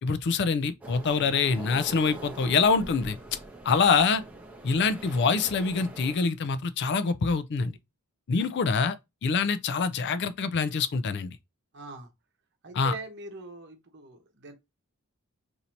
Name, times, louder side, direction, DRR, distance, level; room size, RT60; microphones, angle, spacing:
voice 1, 0.0-3.2 3.6-4.2 4.6-7.8 8.3-9.0 9.2-11.4 12.7-12.9, left 5 dB, 50° left, 0.4 m, -25 dB
sound 1, 0.8-6.2, right 2 dB, 5° right, 0.7 m, -44 dB
voice 2, 11.7-12.1 12.6-14.5, right 3 dB, 50° right, 0.9 m, -42 dB
2.7 x 2.6 x 4.3 m
head